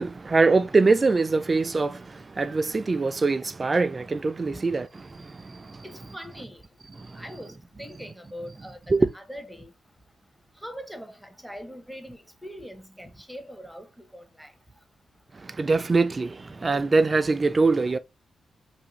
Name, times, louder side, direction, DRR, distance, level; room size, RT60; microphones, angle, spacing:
voice 1, 0.0-5.8 7.0-7.2 8.9-9.1 15.3-18.0, right 3 dB, 35° right, 0.3 m, -23 dB
voice 2, 5.8-6.6 7.1-9.7 10.6-14.5, equal, ahead, 0.7 m, -42 dB
2.6 x 2.4 x 3.0 m
supercardioid pair, 55°, 0 cm